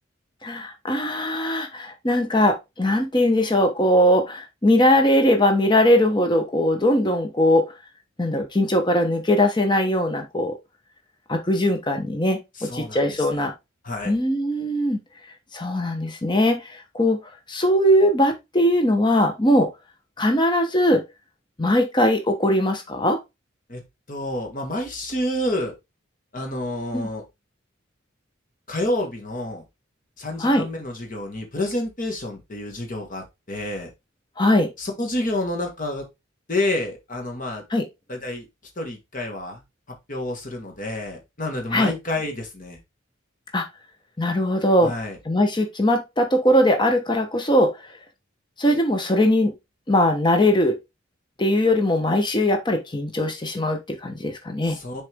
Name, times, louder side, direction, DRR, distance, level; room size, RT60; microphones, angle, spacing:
voice 1, 0.4-7.7 8.2-10.5 11.3-13.5 14.1-15.0 15.5-17.2 17.5-19.7 20.2-21.0 21.6-23.2 26.9-27.1 30.4-30.6 34.4-34.7 37.7-37.8 41.7-41.9 43.5-43.6 44.2-44.9 45.3-47.7 48.6-49.5 49.9-50.8 51.4-54.8, left 1 dB, 25° left, 5 dB, 1.0 m, -20 dB
voice 2, 12.6-13.5 13.8-14.2 23.7-23.8 24.1-25.7 26.3-27.2 28.7-29.6 30.2-33.9 34.8-36.0 36.5-37.6 38.1-38.5 38.8-39.6 40.1-42.8 44.8-45.2 54.6-55.0, left 1 dB, 40° left, 3 dB, 1.8 m, -29 dB
6.6 x 4.3 x 3.5 m, 0.22 s
head